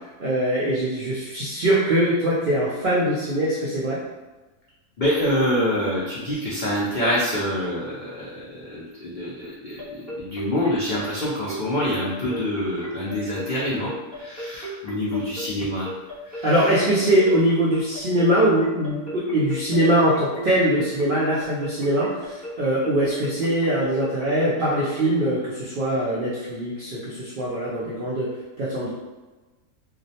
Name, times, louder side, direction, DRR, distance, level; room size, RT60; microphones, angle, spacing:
voice 1, 0.2-4.0 16.4-28.3 28.6-28.9, right 1 dB, 75° right, -7 dB, 0.4 m, -22 dB
voice 2, 5.0-8.3 8.6-9.8 10.2-13.9 14.2-15.9 16.3-16.5, left 1 dB, 75° left, -7 dB, 0.4 m, -26 dB
sound 1, 9.8-25.1, right 1 dB, 10° left, 0.5 m, -35 dB
2.4 x 2.0 x 2.7 m, 1.2 s
omnidirectional pair, 1.4 m